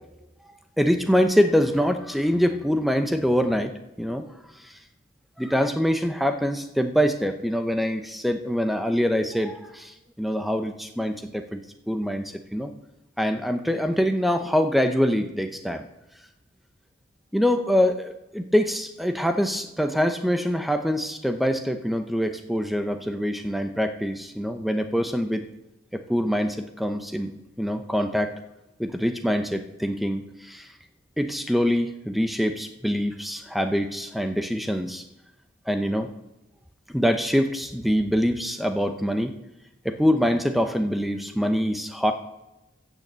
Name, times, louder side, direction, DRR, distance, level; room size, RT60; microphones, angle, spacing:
voice 1, 0.8-4.3 5.4-11.6 11.9-12.7 13.2-15.8 17.3-25.4 25.9-27.3 27.6-28.3 28.8-30.7 31.2-35.0 35.7-36.1 36.9-39.3 39.8-42.1, equal, ahead, 7 dB, 0.7 m, -24 dB
15.5 x 6.6 x 7.5 m, 0.97 s
head